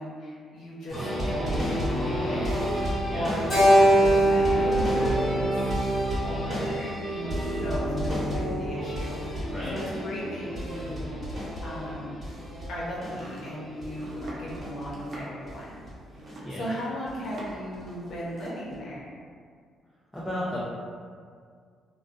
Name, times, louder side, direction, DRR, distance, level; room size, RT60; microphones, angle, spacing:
voice 1, 0.0-12.2 12.7-15.9 16.1-16.2 16.6-19.1, equal, 70° left, -7 dB, 0.7 m, -36 dB
sound 1, 0.9-15.5 15.9-16.0 16.3-16.4 17.1-17.2 17.5-18.1 18.7-18.8, equal, 25° right, 1.2 m, -31 dB
Keyboard (musical), 3.5-7.9, right 1 dB, 45° left, 1.3 m, -23 dB
voice 2, 9.4-9.9 16.4-16.6 20.1-20.6, equal, 5° left, -8 dB, 0.4 m, -34 dB
Domestic sounds home sounds, 12.9-17.7 18.0-18.6, right 1 dB, 50° right, 0.6 m, -45 dB
2.2 x 2.2 x 2.5 m, 2.1 s
cardioid pair, 90°, 0 cm